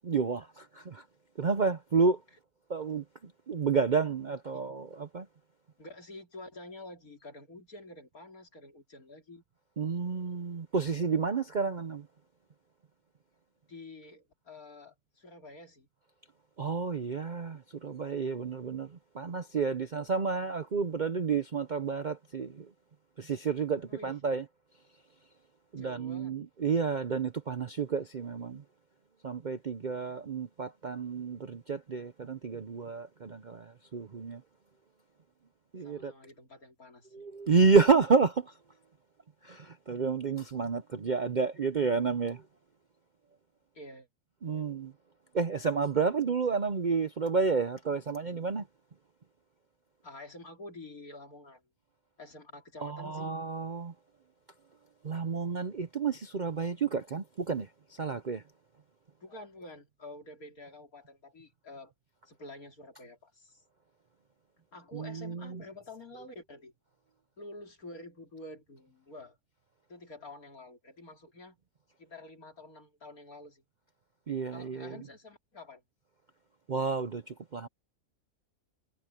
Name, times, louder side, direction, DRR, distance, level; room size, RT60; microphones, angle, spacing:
voice 1, 0.0-1.0 1.4-2.2 2.7-3.0 3.5-5.3 9.8-12.1 16.6-22.7 23.2-24.4 25.7-28.6 29.2-34.4 35.7-36.1 37.1-38.5 39.4-42.4 44.4-44.9 45.3-48.7 52.8-53.9 55.0-58.4 64.9-65.6 74.3-75.0 76.7-77.7, right 5 dB, 45° right, 0.6 m, -30 dB
voice 2, 5.8-9.4 13.7-15.9 23.9-24.2 25.8-26.4 30.0-30.2 35.8-37.3 43.7-44.1 50.0-51.6 52.2-53.4 59.2-61.9 62.3-63.6 64.6-66.7 67.4-69.4 69.9-71.6 72.0-73.6 74.5-75.8, left 2 dB, 65° left, 3.9 m, -48 dB
omnidirectional pair, 1.6 m